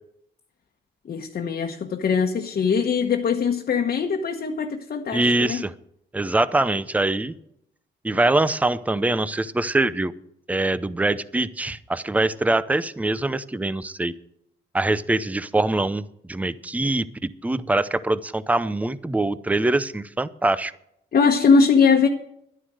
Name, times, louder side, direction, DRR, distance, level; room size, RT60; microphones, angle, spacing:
voice 1, 1.0-5.6 21.1-22.1, left 5 dB, 50° left, 2 dB, 1.2 m, -21 dB
voice 2, 5.1-5.7 6.1-7.3 8.0-10.1 10.5-14.1 14.7-16.0 16.3-20.7, right 2 dB, 5° right, 16 dB, 0.6 m, -23 dB
11.5 x 9.9 x 6.4 m, 0.76 s
cardioid pair, 90°, 20 cm